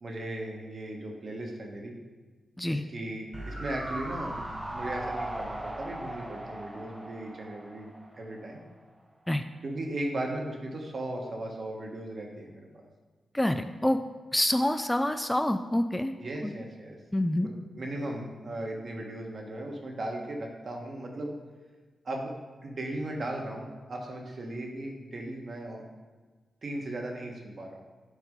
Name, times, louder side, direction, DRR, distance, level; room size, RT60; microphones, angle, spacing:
voice 1, 0.0-1.9 2.7-4.4 4.7-8.6 9.6-12.7 16.2-17.0 17.8-21.3 22.0-22.3 22.6-25.8 26.6-27.8, right 1 dB, 55° right, 1 dB, 1.4 m, -37 dB
sound 1, 3.3-8.6 8.9-9.0, right 1 dB, 20° right, 0.9 m, -38 dB
voice 2, 13.3-14.0 14.3-16.1 16.4-16.6 17.1-17.5, left 1 dB, 10° left, 9 dB, 0.3 m, -27 dB
6.8 x 4.4 x 5.2 m, 1.4 s
cardioid pair, 70°, 0 cm